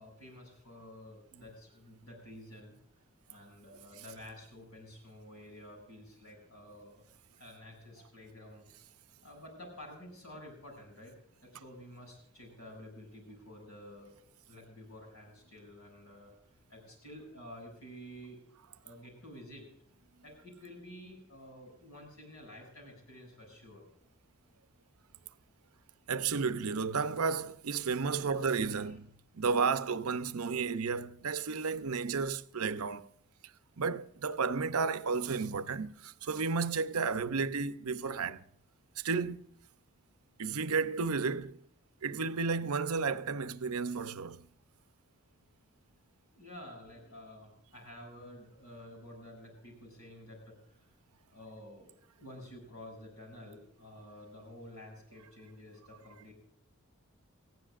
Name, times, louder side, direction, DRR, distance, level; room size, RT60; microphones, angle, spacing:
voice 1, 0.0-2.8 3.3-7.0 7.4-8.7 9.2-14.1 14.5-16.3 16.7-18.4 18.8-19.7 20.2-23.8 27.8-28.9 46.3-50.8 51.3-51.9 52.2-56.3, left 1 dB, 75° left, 7.3 m, -51 dB
voice 2, 26.1-29.1 29.3-33.1 33.8-38.4 39.0-39.5 40.4-41.6 42.0-44.5, right 5 dB, 80° right, 0.7 m, -32 dB
20.0 x 15.5 x 2.5 m
head